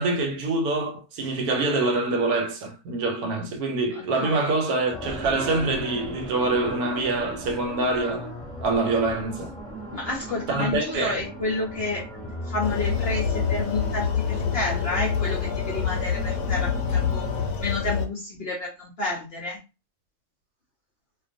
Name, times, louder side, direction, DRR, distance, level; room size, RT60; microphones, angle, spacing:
voice 1, 0.0-8.3 8.6-9.5 10.5-11.2, right 3 dB, 80° right, 1.1 m, -25 dB
voice 2, 3.9-4.6 9.9-17.3 17.6-19.6, left 2 dB, 60° left, 0.7 m, -30 dB
sound 1, 4.9-17.5, right 1 dB, 5° left, 0.7 m, -37 dB
sound 2, 12.6-18.1, left 7 dB, 80° left, 1.1 m, -26 dB
2.4 x 2.2 x 2.5 m
omnidirectional pair, 1.6 m